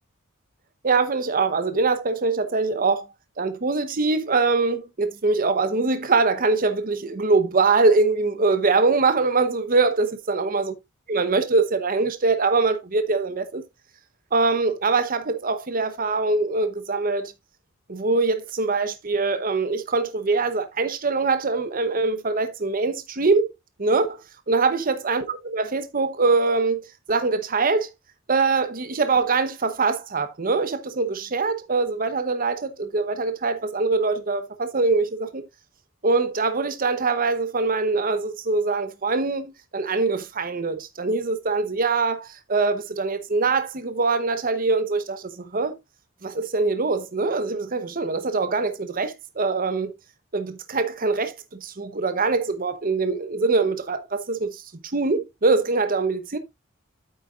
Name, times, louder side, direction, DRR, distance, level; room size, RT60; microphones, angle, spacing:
voice 1, 0.8-3.1 3.4-10.7 11.1-13.6 14.3-17.3 17.9-23.5 23.8-24.2 24.5-26.8 27.1-27.9 28.3-35.4 36.0-45.8 46.2-49.9 50.3-51.3 51.6-54.6 54.9-56.4, right 3 dB, 40° right, 0.9 m, -23 dB
8.7 x 8.7 x 2.4 m
head